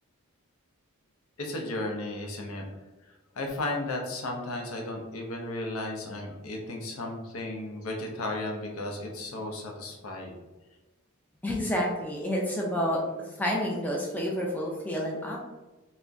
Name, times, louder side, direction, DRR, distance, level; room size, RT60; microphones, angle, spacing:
voice 1, 1.4-2.6 3.4-10.3, left 2 dB, 70° left, 1 dB, 0.6 m, -34 dB
voice 2, 11.4-13.0 13.4-15.4, equal, 5° left, -3 dB, 0.3 m, -29 dB
2.5 x 2.1 x 3.4 m, 1.1 s
head